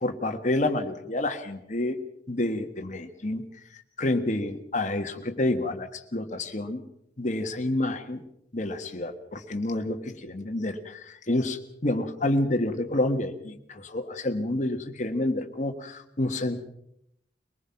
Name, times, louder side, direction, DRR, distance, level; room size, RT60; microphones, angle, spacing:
voice 1, 0.0-2.0 2.3-3.5 4.0-6.8 7.2-8.2 8.5-16.6, left 1 dB, 45° left, 6 dB, 1.6 m, -28 dB
23.0 x 19.5 x 5.9 m, 0.77 s
head